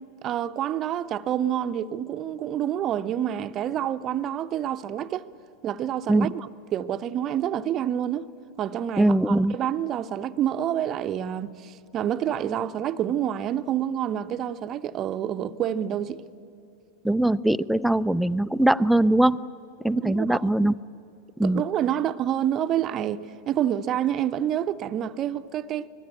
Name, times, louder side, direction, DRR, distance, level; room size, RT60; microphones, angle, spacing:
voice 1, 0.2-5.3 5.6-8.3 8.6-16.2 20.0-20.5 21.4-25.9, right 10 dB, 30° right, 0.7 m, -28 dB
voice 2, 9.0-9.5 17.0-19.4 19.8-20.7 21.4-21.6, right 1 dB, ahead, 0.5 m, -21 dB
25.5 x 21.0 x 8.5 m
figure-of-eight pair, 90°, 0 cm